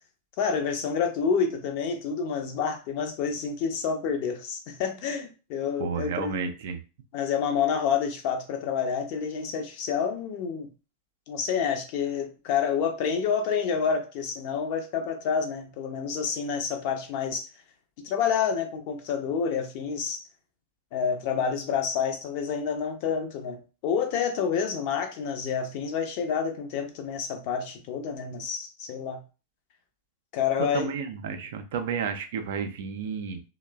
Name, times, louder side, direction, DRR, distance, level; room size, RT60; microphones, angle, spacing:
voice 1, 0.4-6.3 7.1-10.7 11.3-17.5 18.0-20.2 20.9-29.2 30.3-30.9, left 6 dB, 45° left, 5 dB, 0.5 m, -28 dB
voice 2, 5.8-6.8 30.6-33.4, right 6 dB, 55° right, 6 dB, 0.4 m, -31 dB
3.0 x 2.0 x 2.2 m, 0.32 s
figure-of-eight pair, 90°, 0 cm